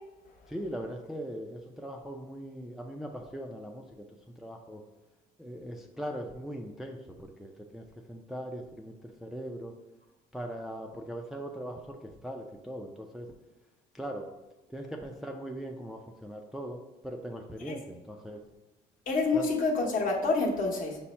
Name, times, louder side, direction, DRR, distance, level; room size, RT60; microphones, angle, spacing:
voice 1, 0.5-4.1 4.4-4.8 5.4-9.7 10.3-13.3 13.9-14.3 14.7-18.4 19.3-19.5, equal, ahead, 2 dB, 0.4 m, -40 dB
voice 2, 19.1-21.0, left 3 dB, 50° left, 0 dB, 1.0 m, -27 dB
5.5 x 2.0 x 4.2 m, 1.1 s
cardioid pair, 110°, 17 cm